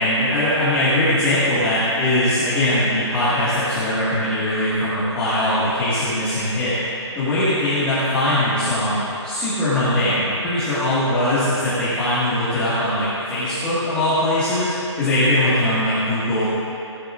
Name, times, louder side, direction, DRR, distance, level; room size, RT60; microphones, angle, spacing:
voice 1, 0.0-6.8 7.2-14.7 15.0-16.5, left 1 dB, 5° left, -14 dB, 1.9 m, -21 dB
18.0 x 11.0 x 2.5 m, 2.9 s
hypercardioid pair, 160°, 15 cm